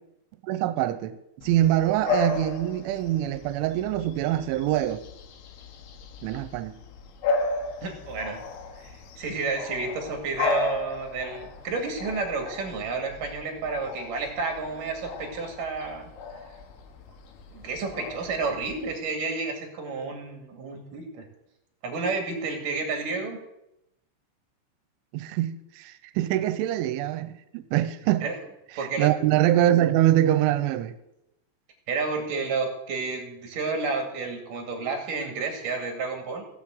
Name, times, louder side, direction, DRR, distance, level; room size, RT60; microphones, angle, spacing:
voice 1, 0.4-1.2 1.4-5.0 6.2-6.7 25.1-28.3 28.8-30.9, right 13 dB, 85° right, 3.2 m, -24 dB
Bark / Bird vocalization bird call bird song, 1.4-19.0, left 4 dB, 80° left, 4.0 m, -35 dB
voice 2, 7.8-8.4 8.8-16.1 17.5-21.3 21.8-23.4 28.2-28.4 28.7-29.1 31.9-36.4, right 4 dB, 50° right, 3.4 m, -31 dB
16.5 x 8.0 x 7.8 m
omnidirectional pair, 5.6 m